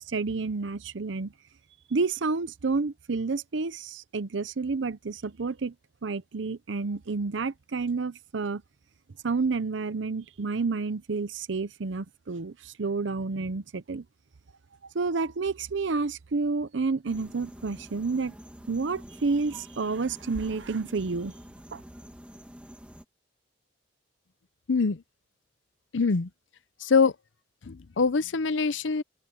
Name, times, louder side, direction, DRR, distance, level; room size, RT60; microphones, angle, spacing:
voice 1, 0.1-1.3 1.9-5.7 6.0-8.6 9.2-14.0 14.9-18.3 18.7-21.3 21.7-21.8, right 4 dB, 75° right, 0.7 m, -30 dB
sound 1, 17.1-23.0, equal, 5° right, 2.0 m, -46 dB
voice 2, 25.9-26.3 26.9-27.1 27.7-29.0, left 4 dB, 90° left, 0.7 m, -24 dB
head